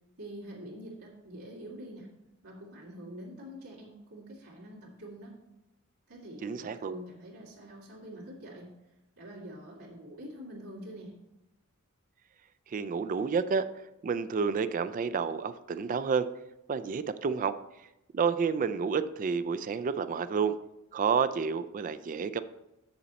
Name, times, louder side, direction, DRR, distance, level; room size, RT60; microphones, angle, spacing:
voice 1, 0.2-2.1 2.4-5.3 6.1-8.7 9.2-11.1, equal, 85° right, -6 dB, 2.5 m, -45 dB
voice 2, 6.4-6.9 12.7-13.7 14.0-16.3 16.7-17.5 18.1-20.5 20.9-22.4, right 6 dB, 40° right, 12 dB, 0.3 m, -29 dB
7.5 x 7.0 x 4.1 m, 0.90 s
head